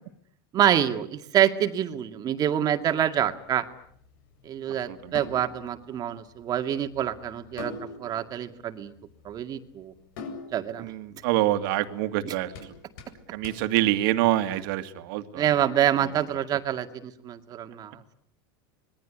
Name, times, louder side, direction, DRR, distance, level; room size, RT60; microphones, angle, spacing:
voice 1, 0.5-3.6 4.5-7.7 8.0-8.9 9.2-9.9 10.5-10.9 12.2-12.3 15.3-18.0, right 10 dB, 35° right, 7 dB, 2.2 m, -26 dB
sound 1, 2.6-14.7, left 3 dB, 70° left, 7.9 m, -46 dB
voice 2, 10.8-12.7 13.3-15.4, right 15 dB, 65° right, 9 dB, 2.4 m, -26 dB
26.5 x 21.5 x 9.8 m, 0.67 s
supercardioid pair, 140°, 12 cm